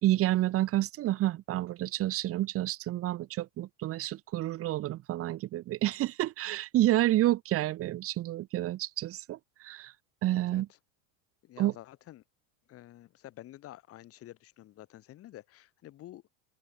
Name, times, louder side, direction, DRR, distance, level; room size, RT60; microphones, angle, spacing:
voice 1, 0.0-9.9 10.2-10.7 11.6-11.7, right 15 dB, 35° right, 2.6 m, -29 dB
voice 2, 10.3-10.6 11.4-12.2 12.7-16.3, left 14 dB, 35° left, 6.5 m, -50 dB
open air
supercardioid pair, 160°, 41 cm